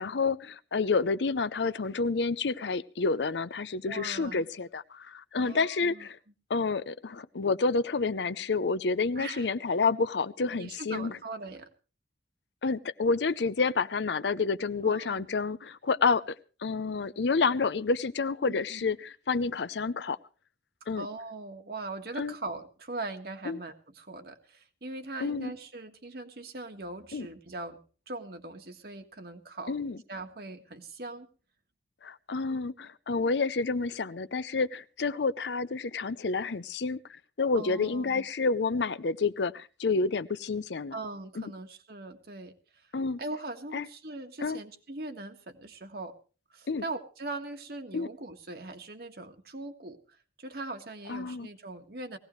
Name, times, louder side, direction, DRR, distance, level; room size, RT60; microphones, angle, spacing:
voice 1, 0.0-6.2 6.5-11.1 12.6-16.4 16.6-20.2 20.9-21.1 22.2-22.3 23.4-23.6 25.2-25.5 27.1-27.3 29.7-30.0 32.0-37.0 37.4-41.0 41.4-41.5 42.9-43.2 43.7-43.9 44.4-44.6 46.7-46.8 47.9-48.1 51.1-51.5, left 4 dB, 80° left, 0.6 m, -29 dB
voice 2, 3.9-4.4 5.4-6.1 9.1-9.5 10.5-11.7 14.8-15.3 18.4-18.9 21.0-27.8 28.1-29.8 30.1-31.3 37.5-38.2 40.9-42.9 43.2-46.1 46.5-50.0 50.4-52.2, right 2 dB, 60° right, 1.6 m, -40 dB
20.0 x 16.5 x 3.2 m
head